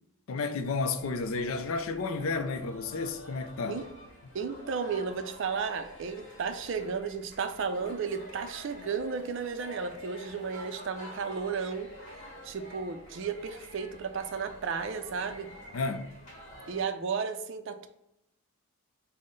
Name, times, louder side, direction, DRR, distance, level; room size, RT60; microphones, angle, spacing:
voice 1, 0.3-3.8 15.7-16.1, left 4 dB, 65° left, 0.4 m, -32 dB
sound 1, 1.0-16.8, equal, 30° left, 1.3 m, -48 dB
voice 2, 4.3-11.9 12.4-15.5 16.7-17.9, right 5 dB, 55° right, 0.4 m, -33 dB
5.5 x 2.1 x 3.8 m
head